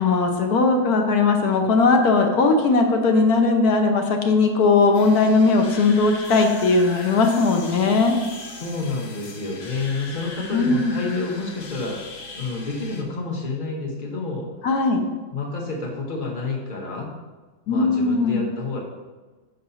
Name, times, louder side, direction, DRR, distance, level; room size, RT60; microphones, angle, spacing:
voice 1, 0.0-8.2 10.5-10.9 14.6-15.0 17.7-18.4, left 3 dB, 60° left, 4 dB, 1.1 m, -18 dB
sound 1, 4.9-13.0, left 3 dB, 75° left, 1.7 m, -39 dB
voice 2, 8.4-12.0 12.3-14.5 15.3-17.1 17.7-18.8, left 3 dB, 35° left, -1 dB, 0.9 m, -29 dB
6.4 x 4.0 x 5.6 m, 1.3 s
omnidirectional pair, 2.2 m